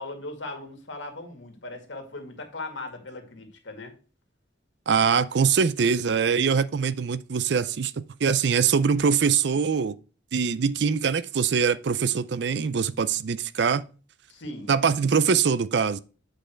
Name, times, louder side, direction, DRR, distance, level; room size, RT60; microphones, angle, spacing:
voice 1, 0.0-3.9 14.3-14.7, left 2 dB, 80° left, 2.1 m, -38 dB
voice 2, 4.9-9.9 10.3-13.8 14.7-16.0, right 6 dB, 65° right, 0.5 m, -23 dB
8.8 x 5.1 x 4.5 m
head